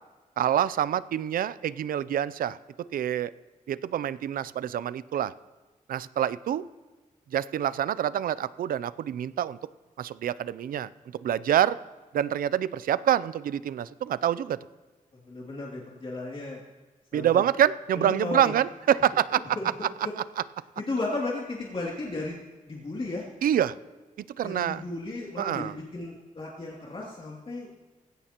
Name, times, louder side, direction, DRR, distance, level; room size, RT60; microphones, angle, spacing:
voice 1, 0.4-2.6 2.9-3.3 3.7-5.3 5.9-6.6 7.3-9.6 10.0-10.9 11.2-11.8 12.1-14.6 17.1-19.4 23.4-23.8 24.4-24.8 25.4-25.7, right 10 dB, 90° right, 16 dB, 0.5 m, -26 dB
voice 2, 15.3-16.6 17.1-17.4 17.9-18.5 19.6-19.7 20.8-22.4 22.7-23.2 24.4-27.7, left 2 dB, 40° left, -4 dB, 2.7 m, -34 dB
18.5 x 16.5 x 3.0 m, 1.3 s
cardioid pair, 80°, 14 cm